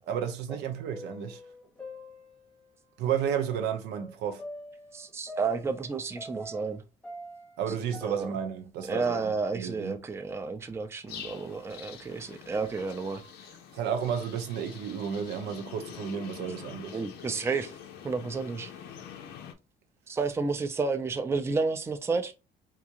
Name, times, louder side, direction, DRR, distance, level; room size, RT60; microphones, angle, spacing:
voice 1, 0.1-1.4 3.0-4.4 7.6-10.0 13.7-17.0, right 8 dB, 85° right, 0.6 m, -32 dB
sound 1, 0.6-2.8 3.5-6.8 7.0-9.4 9.7-9.8 10.5-10.6 11.4-11.6 12.3-12.4 13.2-13.5, left 1 dB, 5° left, 0.8 m, -46 dB
voice 2, 4.9-6.8 8.0-8.3 8.9-13.2 16.9-17.7 18.0-18.7 20.1-22.3, right 4 dB, 15° right, 0.4 m, -31 dB
sound 2, 11.1-19.5, left 8 dB, 75° left, 0.6 m, -45 dB
3.6 x 2.4 x 2.8 m
cardioid pair, 110°, 17 cm